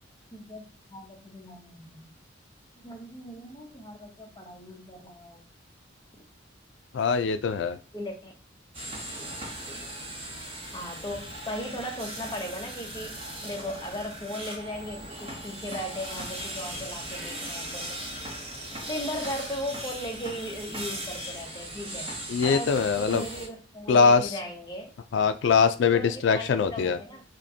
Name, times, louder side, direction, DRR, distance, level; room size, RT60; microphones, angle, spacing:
voice 1, 0.3-0.6 0.9-2.1 2.8-5.5 7.9-8.3 10.7-13.2 13.4-18.0 18.9-22.1 22.4-24.9 25.8-27.2, equal, 20° left, 2 dB, 0.7 m, -37 dB
voice 2, 6.9-7.8 22.3-23.2 23.9-24.3 25.1-27.0, left 5 dB, 60° left, 9 dB, 0.3 m, -22 dB
sound 1, 8.7-23.5, right 1 dB, 30° right, 0.8 m, -38 dB
5.0 x 2.1 x 2.7 m, 0.33 s
head